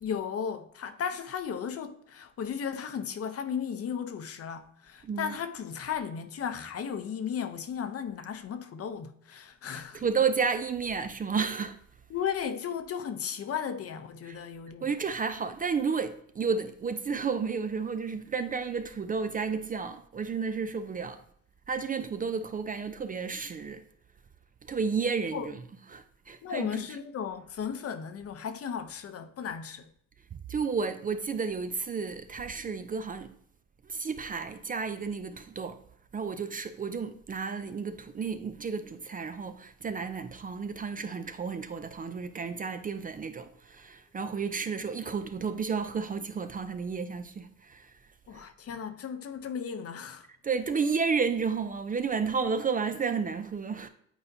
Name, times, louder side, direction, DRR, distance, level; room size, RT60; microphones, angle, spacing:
voice 1, 0.0-10.0 12.1-14.9 25.3-25.5 26.4-29.9 48.3-50.3, left 7 dB, 50° left, 0.7 m, -35 dB
voice 2, 5.0-5.3 9.7-11.8 14.2-14.4 14.8-21.2 21.7-23.8 24.6-25.6 25.9-26.8 30.3-33.4 33.8-35.8 36.1-48.0 48.3-48.5 50.4-53.9, right 5 dB, 30° right, 0.4 m, -32 dB
9.0 x 4.2 x 2.7 m
cardioid pair, 90°, 30 cm